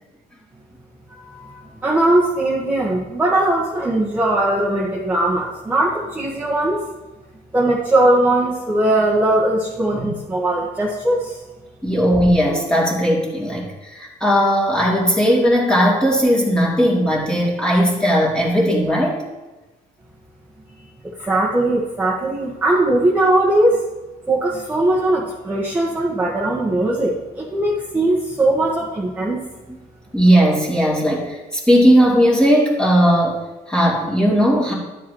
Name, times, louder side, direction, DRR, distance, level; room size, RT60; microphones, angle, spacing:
voice 1, 1.2-6.8 7.5-11.4 21.2-23.8 24.3-29.4, right 1 dB, 10° right, -6 dB, 1.6 m, -19 dB
voice 2, 11.8-19.2 30.1-33.4 33.7-34.7, equal, 5° left, -5 dB, 2.9 m, -17 dB
13.0 x 7.2 x 3.2 m, 1.1 s
cardioid pair, 110°, 17 cm